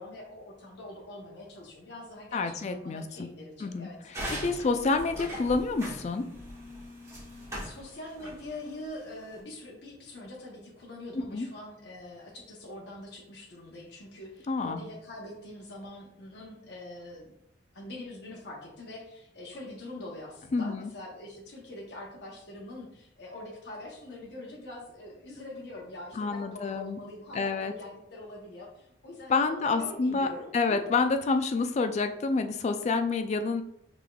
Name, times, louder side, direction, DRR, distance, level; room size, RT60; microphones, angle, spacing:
voice 1, 0.0-5.0 7.6-17.3 17.7-30.8, left 1 dB, 65° left, -2 dB, 0.9 m, -44 dB
voice 2, 2.3-3.3 3.6-6.2 11.3-11.5 14.5-14.8 20.5-20.9 26.2-27.0 27.3-27.7 29.3-30.3 30.5-33.6, left 4 dB, 40° left, 7 dB, 0.3 m, -28 dB
sound 1, 4.1-9.4, equal, 15° right, 1.5 m, -41 dB
4.9 x 3.6 x 2.3 m, 0.78 s
head